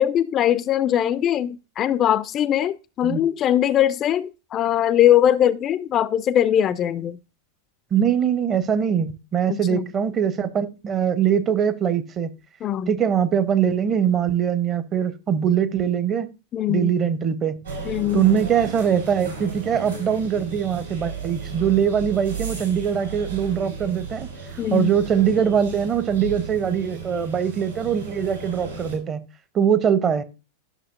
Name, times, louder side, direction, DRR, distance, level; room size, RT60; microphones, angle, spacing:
voice 1, 0.0-7.2 9.5-9.9 12.6-12.9 16.5-16.9 17.8-18.2 24.6-24.9, left 11 dB, 30° left, 0.3 m, -21 dB
voice 2, 7.9-12.3 12.9-16.3 16.7-17.6 18.1-24.3 24.7-29.2 29.5-30.2, right 8 dB, 25° right, 0.7 m, -22 dB
sound 1, 17.6-29.0, right 5 dB, 75° right, 4.5 m, -35 dB
11.0 x 6.2 x 2.4 m
figure-of-eight pair, 90°, 0 cm